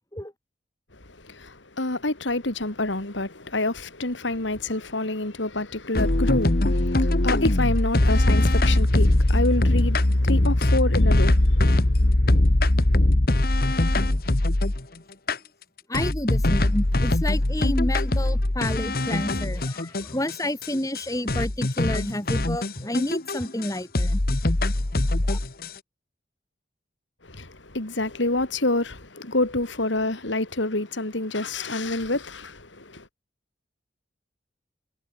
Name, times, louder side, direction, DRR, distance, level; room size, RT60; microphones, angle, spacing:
voice 1, 0.9-12.2 27.2-33.1, left 2 dB, 75° left, 2.9 m, -28 dB
sound 1, 5.9-14.8 15.3-15.4 15.9-20.3 20.6-20.7 20.9-21.0 21.3-23.7 23.9-25.7, left 1 dB, 50° left, 1.4 m, -21 dB
voice 2, 15.9-24.2 25.3-25.4, left 1 dB, 15° left, 2.7 m, -30 dB
head